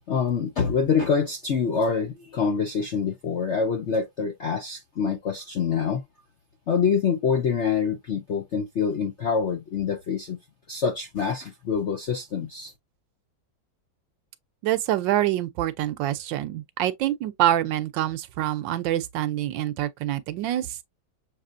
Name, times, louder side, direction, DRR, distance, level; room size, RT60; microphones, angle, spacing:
voice 1, 0.1-6.0 6.7-10.4 10.7-12.7, left 6 dB, 65° left, 0.7 m, -25 dB
voice 2, 14.6-20.7, right 13 dB, 75° right, 1.2 m, -26 dB
6.6 x 3.0 x 2.5 m
omnidirectional pair, 2.1 m